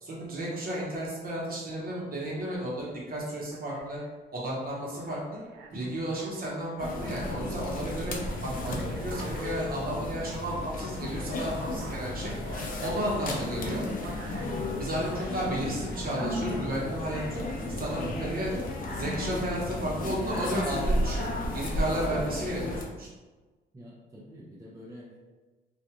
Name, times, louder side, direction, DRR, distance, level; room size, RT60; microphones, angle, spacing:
voice 1, 0.0-4.0 4.3-5.4 5.7-8.2 8.4-12.3 12.8-13.8 14.8-17.4 17.8-18.6 18.9-21.3 21.5-23.1, right 1 dB, 50° right, -5 dB, 0.9 m, -33 dB
Alarm, 2.9-3.0 3.5-4.2 4.7-7.4 7.8-15.4 15.9-16.3, right 3 dB, 90° right, 0.4 m, -48 dB
sound 1, 6.8-22.8, left 1 dB, 45° left, 0.5 m, -33 dB
voice 2, 23.7-25.2, equal, 15° right, -5 dB, 0.5 m, -47 dB
2.4 x 2.2 x 2.9 m, 1.3 s
cardioid pair, 90°, 20 cm